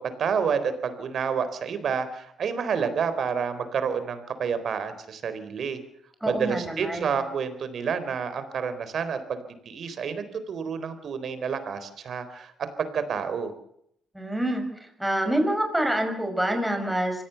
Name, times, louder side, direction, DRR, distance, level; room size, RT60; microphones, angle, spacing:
voice 1, 0.2-5.8 6.2-12.5 12.8-13.5, right 6 dB, 60° right, 11 dB, 4.0 m, -29 dB
voice 2, 6.2-7.1 14.1-14.6 15.0-17.2, right 1 dB, 5° right, 5 dB, 6.5 m, -26 dB
25.0 x 17.5 x 7.0 m, 0.70 s
cardioid pair, 90°, 0 cm